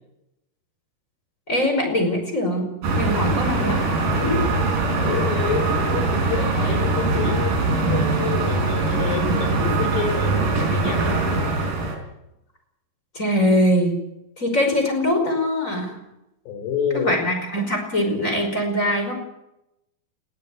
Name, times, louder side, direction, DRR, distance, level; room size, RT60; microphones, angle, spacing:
voice 1, 1.5-2.7 3.0-3.8 4.1-4.4 13.1-14.0 14.4-15.9 16.9-19.1, left 1 dB, 20° left, 4 dB, 5.3 m, -22 dB
sound 1, 2.8-12.0, right 3 dB, 55° right, 5.7 m, -22 dB
voice 2, 5.0-11.2 16.5-17.2, left 6 dB, 80° left, 6 dB, 5.5 m, -28 dB
21.0 x 15.0 x 8.3 m, 0.88 s
omnidirectional pair, 4.8 m